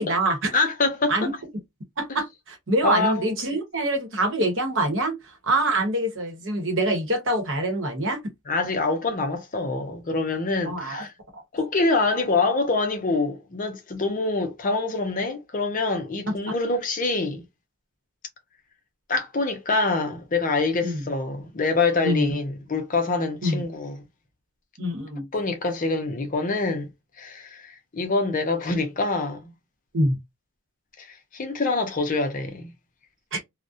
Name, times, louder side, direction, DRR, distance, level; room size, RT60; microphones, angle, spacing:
voice 1, 0.0-0.5 1.1-1.3 2.0-5.2 5.4-8.2 10.6-11.0 11.3-11.4 20.8-21.0 22.0-22.3 23.4-23.6 24.8-25.2 29.9-30.2 33.3-33.4, right 1 dB, 55° right, 0.9 m, -25 dB
voice 2, 0.5-1.3 2.8-3.4 8.5-11.1 11.5-17.4 19.1-24.0 25.3-26.9 27.2-29.5 31.0-32.7, left 3 dB, 35° left, 0.5 m, -25 dB
2.4 x 2.0 x 2.5 m
head